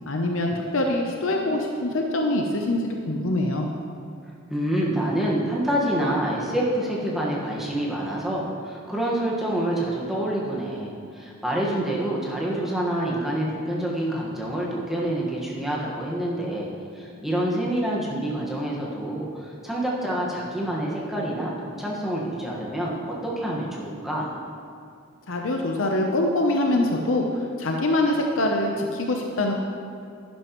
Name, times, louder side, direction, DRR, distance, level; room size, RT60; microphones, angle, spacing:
voice 1, 0.1-3.7 25.3-29.5, left 1 dB, 65° left, 1 dB, 0.7 m, -24 dB
voice 2, 4.5-16.7 16.9-24.3, right 1 dB, ahead, -5 dB, 1.4 m, -27 dB
11.0 x 11.0 x 3.1 m, 2.4 s
head